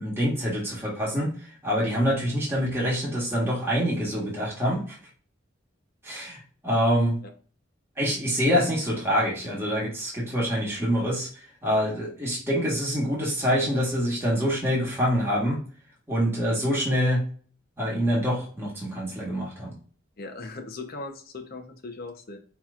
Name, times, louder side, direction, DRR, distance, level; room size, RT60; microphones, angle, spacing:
voice 1, 0.0-1.3 1.6-5.0 6.0-7.2 8.0-11.3 11.6-15.6 16.1-17.2 17.8-19.7, equal, 10° right, -5 dB, 1.7 m, -25 dB
voice 2, 20.2-22.4, left 3 dB, 50° left, 5 dB, 0.9 m, -38 dB
5.7 x 3.1 x 2.4 m, 0.43 s
head